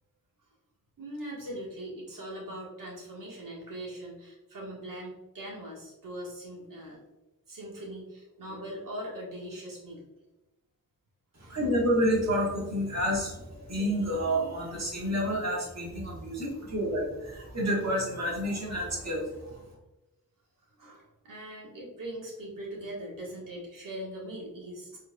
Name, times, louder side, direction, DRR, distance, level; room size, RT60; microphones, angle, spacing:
voice 1, 1.0-7.0 7.5-10.0 11.4-11.6 20.8-25.0, right 1 dB, 65° right, -4 dB, 1.4 m, -41 dB
voice 2, 11.4-19.6, equal, 50° right, -4 dB, 1.4 m, -29 dB
4.5 x 2.8 x 2.3 m, 1.0 s
cardioid pair, 60°, 35 cm